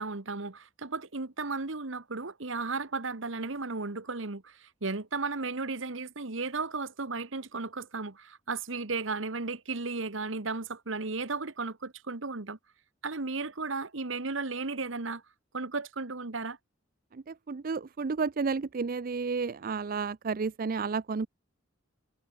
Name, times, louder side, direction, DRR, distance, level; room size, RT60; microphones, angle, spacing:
voice 1, 0.0-12.6 13.0-15.2 15.5-16.6, right 3 dB, 70° right, 1.4 m, -35 dB
voice 2, 17.1-21.3, right 4 dB, 45° right, 0.5 m, -32 dB
head